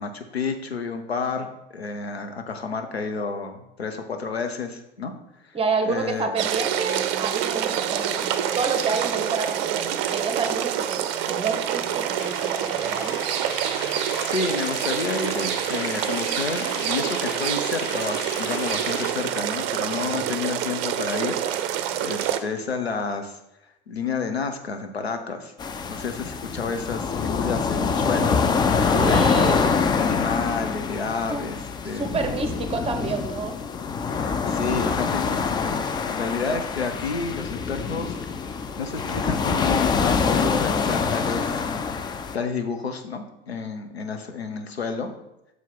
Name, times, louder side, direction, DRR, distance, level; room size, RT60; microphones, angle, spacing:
voice 1, 0.0-5.1 5.8-6.3 14.2-21.4 21.7-23.4 23.9-25.5 25.9-28.4 29.0-29.5 30.0-31.6 31.8-32.1 34.2-41.6 42.3-45.1, left 5 dB, 80° left, 6 dB, 0.8 m, -30 dB
voice 2, 5.5-13.2 28.9-29.9 31.3-33.6, right 4 dB, 20° right, 6 dB, 0.9 m, -29 dB
sound 1, 6.4-22.4, right 10 dB, 40° right, 0.6 m, -27 dB
sound 2, 12.2-19.1, left 5 dB, 35° left, 0.9 m, -38 dB
sound 3, 25.6-42.4, left 5 dB, 15° left, 0.4 m, -25 dB
6.3 x 4.5 x 5.3 m, 0.86 s
figure-of-eight pair, 80°, 31 cm